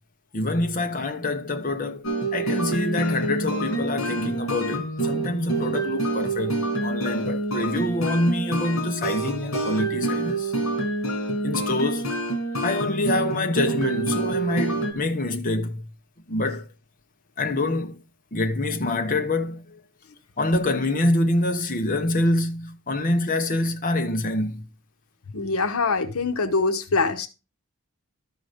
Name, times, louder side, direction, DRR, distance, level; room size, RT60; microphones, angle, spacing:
voice 1, 0.3-2.0 2.3-10.5 11.4-12.1 12.6-15.9 16.3-16.7 17.4-18.0 18.3-19.8 20.4-24.7, left 2 dB, 40° left, 1.0 m, -26 dB
sound 1, 2.0-14.9, right 2 dB, 70° left, 2.6 m, -27 dB
voice 2, 25.3-27.3, left 4 dB, 85° left, 1.0 m, -24 dB
12.5 x 4.9 x 5.1 m
head